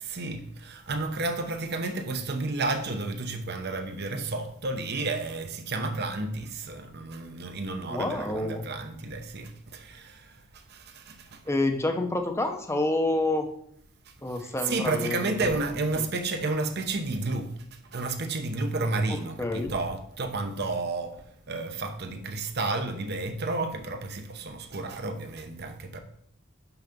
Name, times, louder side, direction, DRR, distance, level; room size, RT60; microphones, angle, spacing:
voice 1, 0.1-10.4 10.7-11.4 14.4-17.5 17.9-26.0, right 3 dB, 50° right, 0.8 m, -31 dB
voice 2, 7.9-8.6 11.5-13.5 14.2-15.5 16.0-16.1 19.1-19.7, left 2 dB, 15° left, 0.7 m, -28 dB
5.9 x 5.7 x 5.2 m
head